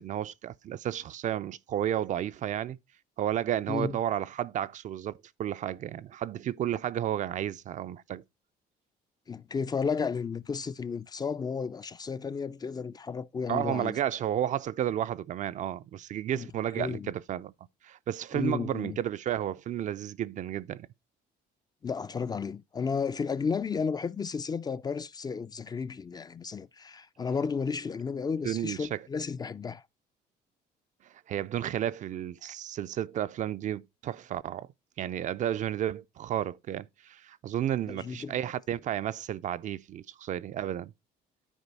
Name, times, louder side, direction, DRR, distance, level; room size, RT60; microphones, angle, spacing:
voice 1, 0.0-2.8 3.2-5.1 5.4-8.2 13.5-17.5 17.8-20.9 28.4-29.0 31.3-34.7 35.0-40.9, right 11 dB, 45° right, 0.4 m, -32 dB
voice 2, 9.3-14.0 16.3-16.5 16.8-17.1 18.3-19.0 21.8-29.8 37.9-38.3, left 5 dB, 25° left, 0.3 m, -33 dB
9.9 x 4.5 x 4.1 m
cardioid pair, 110°, 17 cm